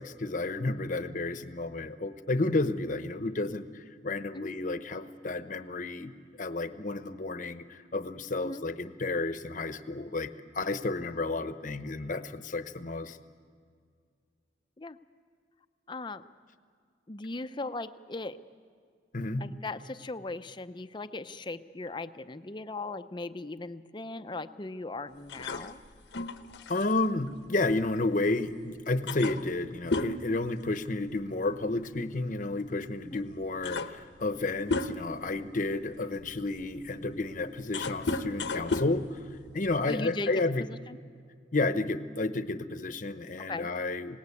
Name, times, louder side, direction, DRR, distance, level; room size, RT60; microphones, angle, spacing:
voice 1, 0.0-6.1 6.4-10.3 10.5-13.2 19.1-19.5 26.7-39.2 39.5-40.6 41.5-44.2, left 2 dB, 45° left, 10 dB, 0.9 m, -31 dB
voice 2, 15.9-16.2 17.1-18.4 19.4-25.8 33.1-33.2 39.9-41.0 43.4-43.7, left 2 dB, 25° left, 11 dB, 0.6 m, -38 dB
sound 1, 25.3-28.3 28.6-28.7 29.1-31.2 31.5-31.8 32.8-32.9 33.3-35.3 35.9-40.0, left 3 dB, 75° left, 1.0 m, -35 dB
26.5 x 18.5 x 8.5 m, 2.1 s
head